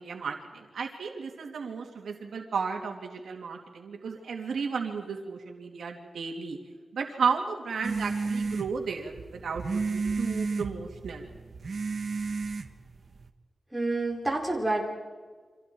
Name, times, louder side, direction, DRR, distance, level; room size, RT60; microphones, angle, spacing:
voice 1, 0.0-6.6 6.9-11.3, right 5 dB, 80° right, 2 dB, 2.9 m, -33 dB
sound 1, 7.8-13.3, right 4 dB, 50° right, 1.4 m, -32 dB
voice 2, 13.7-14.8, right 2 dB, 10° right, -2 dB, 4.7 m, -28 dB
29.5 x 25.5 x 4.7 m, 1.5 s
wide cardioid pair, 165°, 0 cm